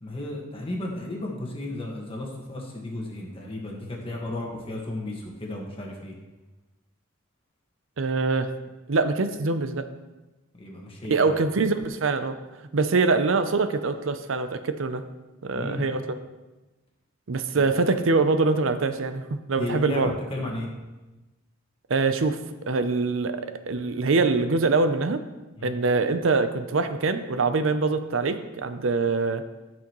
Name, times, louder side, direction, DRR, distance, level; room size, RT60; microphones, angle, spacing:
voice 1, 0.0-6.1 10.6-11.3 15.5-15.9 17.6-17.7 19.6-20.7 25.6-25.7, left 2 dB, 25° left, -1 dB, 1.6 m, -34 dB
voice 2, 8.0-8.5 8.9-9.9 11.1-12.4 12.7-15.0 15.4-16.0 17.3-20.1 21.9-22.4 22.7-25.2 25.6-29.4, right 3 dB, 65° right, 10 dB, 0.6 m, -24 dB
14.0 x 6.1 x 3.1 m, 1.1 s
head